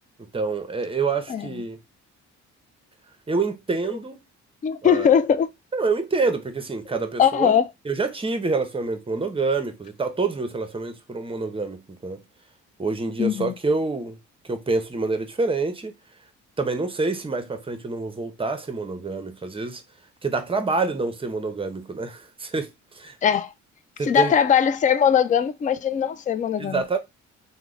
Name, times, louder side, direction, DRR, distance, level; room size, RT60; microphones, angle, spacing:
voice 1, 0.3-1.8 3.3-4.2 4.8-5.1 5.7-7.5 7.9-12.2 12.8-14.2 14.5-15.9 16.6-19.8 20.2-23.1 24.0-24.3 26.6-27.0, right 3 dB, 20° right, 0.6 m, -27 dB
voice 2, 4.6-5.5 7.2-7.7 13.2-13.5 23.2-23.5 24.0-26.8, left 8 dB, 25° left, 0.3 m, -20 dB
3.0 x 2.1 x 3.7 m
cardioid pair, 90°, 30 cm